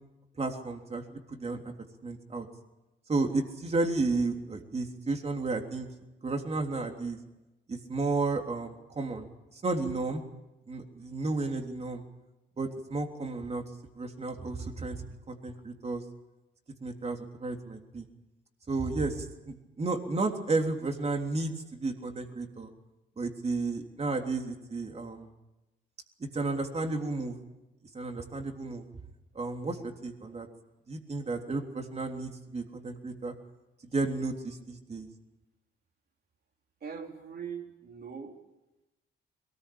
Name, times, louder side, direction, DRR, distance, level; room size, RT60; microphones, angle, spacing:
voice 1, 0.4-1.7 2.0-2.5 3.1-5.9 6.2-7.2 7.7-9.3 9.5-10.2 10.7-12.0 12.6-13.6 14.0-15.0 15.3-16.0 16.8-18.1 18.7-22.7 23.2-25.3 26.2-27.4 27.9-28.8 29.4-30.5 30.9-33.3 33.9-35.1, right 3 dB, 30° right, 4 dB, 3.4 m, -32 dB
voice 2, 36.8-38.4, right 6 dB, 55° right, 2 dB, 4.2 m, -41 dB
22.0 x 19.5 x 8.7 m, 1.0 s
cardioid pair, 90°, 20 cm